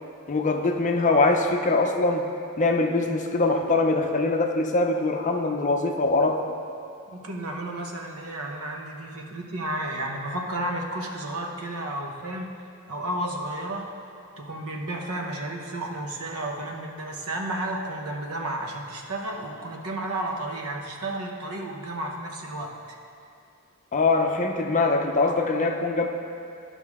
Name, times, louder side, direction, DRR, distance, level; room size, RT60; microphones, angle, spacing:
voice 1, 0.3-2.3 2.6-6.4 23.9-26.1, left 3 dB, 35° left, 3 dB, 0.5 m, -23 dB
voice 2, 7.1-12.5 12.9-13.9 14.4-23.0, right 1 dB, 70° right, 2 dB, 0.9 m, -32 dB
12.5 x 5.5 x 3.6 m, 2.5 s
head